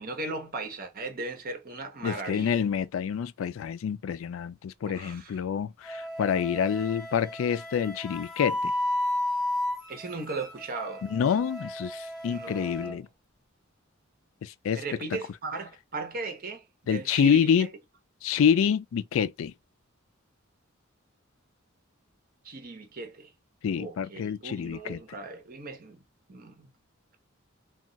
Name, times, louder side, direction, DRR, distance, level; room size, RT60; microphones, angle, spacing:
voice 1, 0.0-2.6 4.8-5.4 9.9-11.0 12.2-13.0 14.7-16.6 16.9-17.7 22.4-23.3 23.8-26.0 26.3-26.7, right 3 dB, 45° right, 0.9 m, -37 dB
voice 2, 2.0-8.7 11.0-13.1 14.4-14.8 16.9-17.7 18.2-19.5 23.6-25.0, left 7 dB, 70° left, 0.3 m, -27 dB
Wind instrument woodwind instrument, 5.8-12.9, left 1 dB, ahead, 1.3 m, -33 dB
2.3 x 2.3 x 3.9 m
head